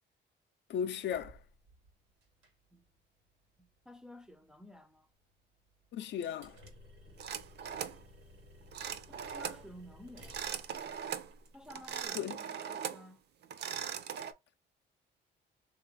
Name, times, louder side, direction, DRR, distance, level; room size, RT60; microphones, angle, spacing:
voice 1, 0.7-1.4 5.9-6.6 12.2-12.4, left 8 dB, 65° left, 0.4 m, -36 dB
sound 1, 0.9-12.1, equal, 85° right, 1.2 m, -58 dB
voice 2, 3.6-5.1 9.1-10.4 11.5-13.2, left 1 dB, 5° right, 0.4 m, -53 dB
sound 2, 7.2-8.0 8.7-9.6 10.2-11.3 11.7-13.1 13.4-14.3, right 8 dB, 60° right, 0.5 m, -40 dB
3.2 x 2.4 x 3.1 m
cardioid pair, 90°, 20 cm